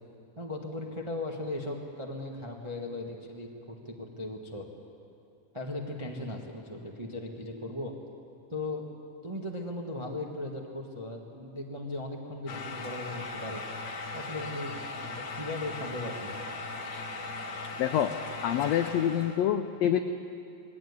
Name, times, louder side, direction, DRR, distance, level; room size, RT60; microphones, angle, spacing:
voice 1, 0.4-4.7 5.5-7.9 8.5-8.9 9.2-13.6 14.1-16.4, left 2 dB, 30° right, 0 dB, 0.5 m, -37 dB
sound 1, 12.5-19.5, left 3 dB, 65° left, 2.5 m, -38 dB
voice 2, 17.8-18.1 18.4-20.0, left 10 dB, 85° left, 8 dB, 1.5 m, -26 dB
21.5 x 17.0 x 9.7 m, 2.7 s
omnidirectional pair, 3.8 m